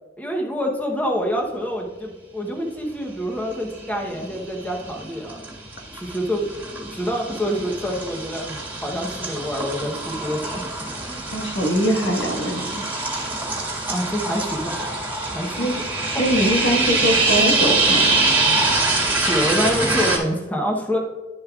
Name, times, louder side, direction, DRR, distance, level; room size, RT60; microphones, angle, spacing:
voice 1, 0.2-5.4 5.9-6.5 6.8-11.2 13.9-14.9 15.3-15.6 15.8-16.2 19.1-21.0, equal, 10° left, 1 dB, 0.9 m, -27 dB
sound 1, 3.8-4.3 4.7-20.2, right 3 dB, 10° right, 1.9 m, -24 dB
voice 2, 11.3-12.8 15.6-15.8 16.2-18.2, equal, 75° left, 1 dB, 1.5 m, -22 dB
11.5 x 7.1 x 2.4 m, 1.3 s
head